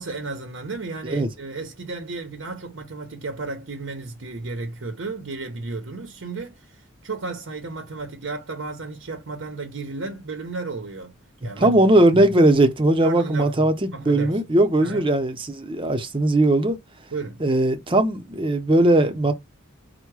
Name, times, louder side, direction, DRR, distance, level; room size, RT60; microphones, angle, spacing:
voice 1, 0.0-11.1 11.4-11.7 12.1-12.2 13.0-13.7 13.9-14.4 14.8-15.1 17.1-17.4, right 3 dB, 65° right, 0.7 m, -33 dB
voice 2, 11.6-16.8 17.4-19.3, right 1 dB, 25° right, 0.7 m, -19 dB
4.5 x 2.2 x 4.7 m
head